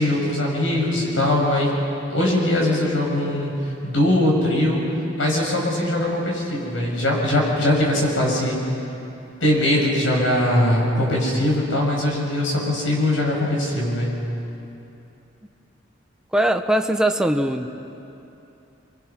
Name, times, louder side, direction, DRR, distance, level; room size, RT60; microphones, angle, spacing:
voice 1, 0.0-1.7 2.1-3.5 3.8-4.8 5.2-8.6 9.4-14.2, left 1 dB, 75° left, -2 dB, 6.7 m, -21 dB
voice 2, 16.3-17.7, right 1 dB, 5° right, 6 dB, 0.9 m, -20 dB
28.0 x 23.5 x 6.1 m, 2.9 s
head